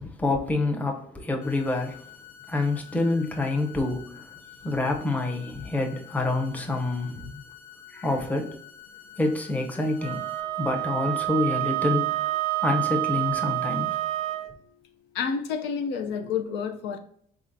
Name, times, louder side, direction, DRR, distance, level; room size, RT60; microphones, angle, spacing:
voice 1, 0.0-2.0 2.5-4.3 4.6-7.4 7.9-8.6 9.2-10.2 10.6-12.3 12.6-14.0, left 2 dB, 10° left, 0.6 m, -27 dB
sound 1, 1.4-10.4, left 9 dB, 50° left, 0.7 m, -49 dB
Wind instrument woodwind instrument, 10.0-14.5, right 17 dB, 75° right, 0.5 m, -28 dB
voice 2, 15.1-17.0, left 6 dB, 85° left, 0.6 m, -29 dB
4.2 x 3.6 x 2.6 m
cardioid pair, 110°, 17 cm